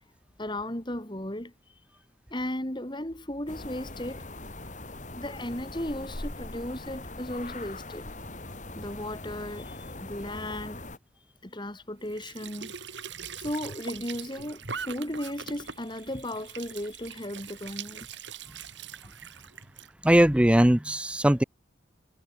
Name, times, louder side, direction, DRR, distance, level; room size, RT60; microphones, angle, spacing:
voice 1, 0.4-1.5 2.3-4.3 5.1-8.1 8.7-10.8 11.4-18.1, left 1 dB, 25° left, 3.2 m, -36 dB
sound 1, 3.5-11.0, left 2 dB, 40° left, 3.8 m, -41 dB
Squeak / Sink (filling or washing) / Trickle dribble, 12.0-19.9, right 6 dB, 70° right, 3.1 m, -42 dB
voice 2, 20.0-21.4, right 1 dB, 5° right, 0.5 m, -20 dB
head